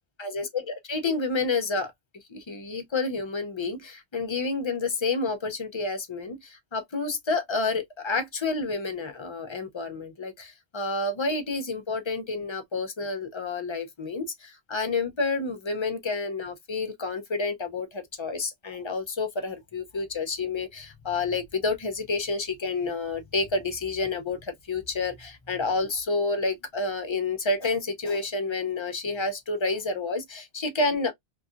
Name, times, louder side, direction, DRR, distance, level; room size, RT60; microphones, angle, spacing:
voice 1, 0.2-1.9 2.3-31.1, left 3 dB, 35° left, 0.5 m, -29 dB
3.0 x 2.7 x 2.4 m
omnidirectional pair, 1.1 m